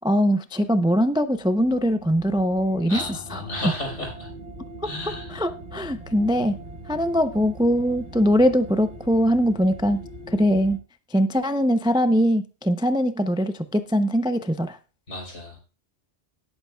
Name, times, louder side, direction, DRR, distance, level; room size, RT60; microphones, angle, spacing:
voice 1, 0.0-3.0 3.3-3.7 4.8-4.9 5.3-6.6 6.9-10.0 10.3-10.8 11.1-14.8, equal, 5° right, 9 dB, 0.4 m, -22 dB
sound 1, 1.0-10.8, right 2 dB, 65° right, 1.8 m, -41 dB
voice 2, 2.9-4.3 4.8-5.5 15.1-15.6, left 1 dB, 70° left, 0 dB, 4.7 m, -33 dB
18.5 x 8.6 x 2.3 m, 0.35 s
omnidirectional pair, 1.2 m